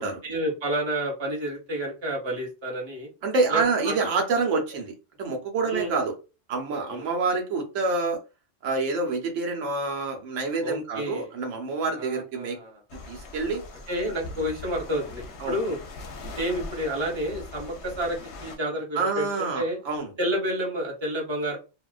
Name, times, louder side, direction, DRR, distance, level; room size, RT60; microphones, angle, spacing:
voice 1, 0.2-3.1 3.5-3.9 5.7-5.9 6.9-7.1 10.6-11.3 11.9-12.7 13.9-15.8 16.4-19.8 20.2-21.6, right 1 dB, 25° right, 0 dB, 0.8 m, -30 dB
voice 2, 3.2-6.2 6.5-8.2 8.6-12.6 13.1-13.6 15.4-15.6 18.9-20.1, right 3 dB, 85° right, 2 dB, 1.0 m, -27 dB
sound 1, 12.9-18.6, left 3 dB, 65° left, 0.8 m, -41 dB
2.4 x 2.2 x 2.3 m, 0.29 s
omnidirectional pair, 1.3 m